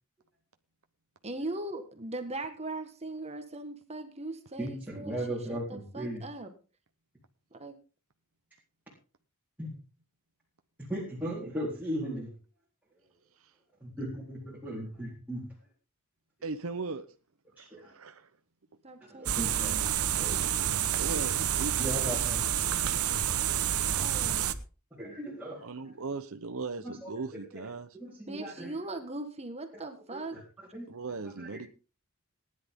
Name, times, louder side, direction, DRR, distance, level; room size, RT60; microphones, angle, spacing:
voice 1, 1.2-6.5 7.5-7.8 18.8-19.8 23.8-24.4 28.3-30.4, right 2 dB, 30° right, 1.6 m, -40 dB
voice 2, 4.6-6.2 9.6-9.7 10.8-12.3 13.8-15.5 17.6-17.9 19.0-19.7 20.2-20.5 21.0-21.2 21.8-22.4 23.0-23.1 24.9-25.7 26.8-27.1 27.5-27.6 28.0-28.7 30.1-30.4 30.7-30.9 31.2-31.6, right 1 dB, 10° right, 4.0 m, -37 dB
voice 3, 16.4-17.1 17.6-18.3 20.3-22.2 25.6-28.0 30.9-31.7, right 4 dB, 65° right, 1.0 m, -39 dB
sound 1, 19.3-24.5, right 10 dB, 85° right, 1.1 m, -29 dB
19.0 x 10.5 x 3.7 m
head